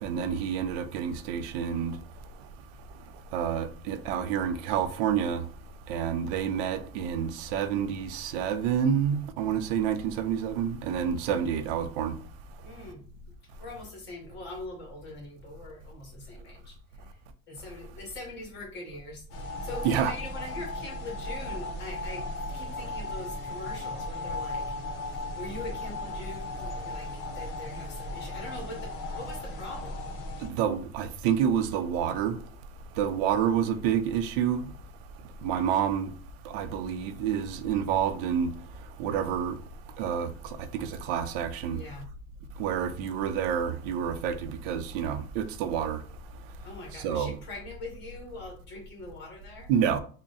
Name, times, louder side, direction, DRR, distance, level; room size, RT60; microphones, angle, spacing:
voice 1, 0.0-2.0 3.3-5.4 5.9-12.2 19.8-20.1 30.4-32.4 33.0-34.7 35.4-36.1 36.4-38.5 39.0-39.6 40.0-41.8 42.6-46.0 46.9-47.4 49.7-50.0, right 8 dB, 75° right, 0.6 m, -28 dB
voice 2, 12.6-13.0 13.6-17.1 17.5-19.2 19.6-22.3 22.5-24.6 25.3-27.1 27.3-30.1 41.7-42.1 46.6-49.7, left 2 dB, 35° left, 1.7 m, -42 dB
sound 1, 19.3-30.5, left 2 dB, 60° left, 1.0 m, -36 dB
3.6 x 2.1 x 4.0 m
cardioid pair, 145°, 30 cm